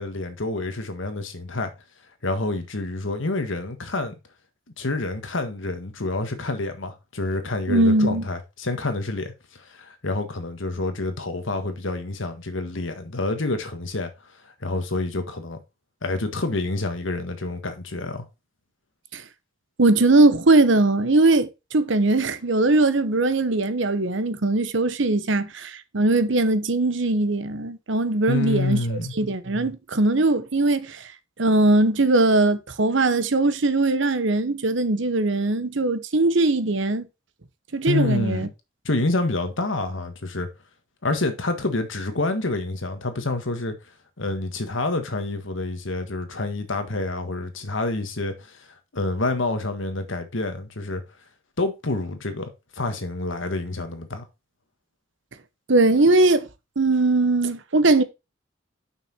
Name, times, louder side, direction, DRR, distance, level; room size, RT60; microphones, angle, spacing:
voice 1, 0.0-1.7 2.2-4.1 4.8-14.1 14.4-15.6 16.0-18.2 28.3-29.1 37.9-38.5 38.8-40.5 41.0-43.8 44.2-48.7 48.9-51.0 51.6-52.4 52.8-54.2, left 2 dB, 70° left, 1.6 m, -28 dB
voice 2, 7.7-8.3 19.1-19.2 19.8-31.1 31.4-37.1 37.7-38.5 55.7-56.5 56.8-58.0, right 2 dB, 65° right, 0.9 m, -20 dB
6.8 x 5.9 x 4.4 m
head